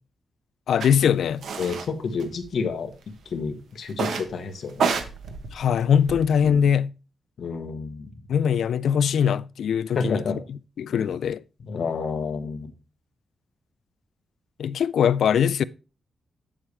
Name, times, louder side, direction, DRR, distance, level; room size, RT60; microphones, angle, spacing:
voice 1, 0.7-1.4 5.5-6.9 8.3-10.2 10.5-11.4 14.6-15.6, left 8 dB, 80° left, 0.3 m, -22 dB
sound 1, 0.8-0.9 1.4-1.9 2.2-2.9 3.9-4.3 4.7-6.5, right 5 dB, 80° right, 1.0 m, -29 dB
voice 2, 1.6-2.9 3.3-4.9 6.4-6.7 7.4-8.1 9.9-10.4 10.9-11.1 11.6-12.7, left 5 dB, 60° left, 1.2 m, -30 dB
8.5 x 7.3 x 3.3 m
wide cardioid pair, 150°, 0 cm